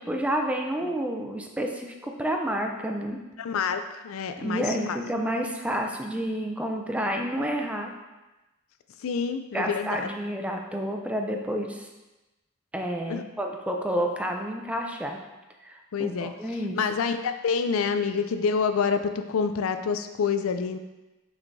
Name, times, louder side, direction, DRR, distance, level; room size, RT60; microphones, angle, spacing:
voice 1, 0.1-3.2 4.4-7.9 9.5-11.9 12.7-15.2 15.6-16.8, equal, 5° right, 2 dB, 0.5 m, -29 dB
voice 2, 3.4-5.0 9.0-10.1 13.1-13.2 15.9-16.3 16.7-20.8, left 5 dB, 75° left, 9 dB, 0.4 m, -27 dB
6.4 x 5.9 x 2.6 m, 1.1 s
head